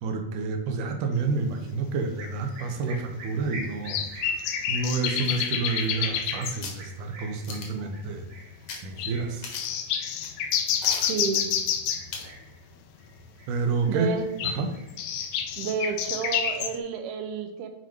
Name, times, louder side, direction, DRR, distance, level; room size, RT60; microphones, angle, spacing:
voice 1, 0.0-4.4 4.7-8.3 8.8-9.5 13.5-14.1 14.4-14.7, right 4 dB, 70° right, 5 dB, 2.2 m, -29 dB
sound 1, 1.6-1.7 2.5-2.6 3.9-6.6 7.3-7.4 7.6-7.7 8.1-8.4 9.0-9.1 9.6-12.1 14.2-16.7, left 8 dB, 90° left, 1.6 m, -28 dB
sound 2, 2.2-11.5 11.9-12.6 13.0-13.9 14.2-15.5, right 2 dB, 50° right, 2.8 m, -44 dB
sound 3, 5.2-6.2 6.6-6.8 7.4-7.9 8.7-8.8 9.1-9.2 9.4-9.9 10.2-10.3 10.8-11.2 12.1-12.4 12.7-12.8, left 4 dB, 60° left, 1.7 m, -38 dB
voice 2, 11.1-11.5 13.9-14.3 15.6-17.7, right 6 dB, 90° right, 7 dB, 2.8 m, -30 dB
7.4 x 5.0 x 4.5 m, 0.95 s
omnidirectional pair, 4.3 m